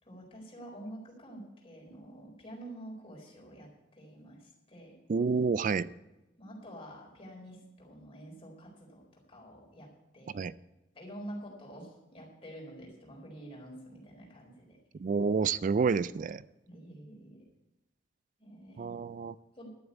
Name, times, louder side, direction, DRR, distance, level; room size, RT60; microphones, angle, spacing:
voice 1, 0.0-5.0 6.4-10.5 10.9-14.8 16.7-17.4 18.4-19.0 19.6-19.7, right 1 dB, 30° left, 4.1 m, -48 dB
voice 2, 5.1-5.9 10.3-10.5 15.0-16.4 18.8-19.3, right 5 dB, 45° right, 0.3 m, -29 dB
12.0 x 7.2 x 8.2 m
head